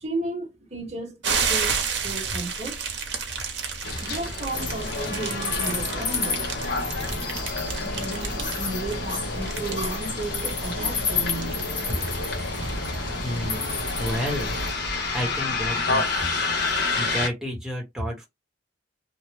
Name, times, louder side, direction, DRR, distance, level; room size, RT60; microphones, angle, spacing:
voice 1, 0.0-2.9 4.0-6.5 7.8-11.7, right 2 dB, 35° right, 1.0 m, -34 dB
sound 1, 1.2-15.4, right 5 dB, 65° right, 0.9 m, -33 dB
Bus, 3.8-17.3, left 3 dB, 60° left, 1.0 m, -31 dB
sound 2, 4.5-14.7, left 3 dB, 80° left, 1.3 m, -30 dB
voice 2, 13.2-13.6 14.0-14.5 15.1-16.0 17.0-18.3, equal, ahead, 0.9 m, -30 dB
2.9 x 2.0 x 3.3 m
head